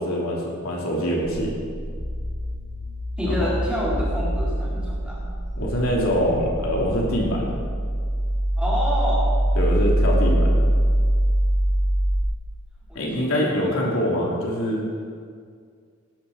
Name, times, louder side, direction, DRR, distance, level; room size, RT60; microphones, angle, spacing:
voice 1, 0.0-1.5 3.2-3.5 5.6-7.6 9.5-10.6 12.9-14.8, equal, 80° left, -3 dB, 3.1 m, -24 dB
sound 1, 1.2-12.2, right 1 dB, 60° left, 3.6 m, -23 dB
voice 2, 3.2-5.2 8.6-9.4 12.9-13.9, equal, 5° right, -7 dB, 3.9 m, -28 dB
17.5 x 12.5 x 4.3 m, 2.1 s
head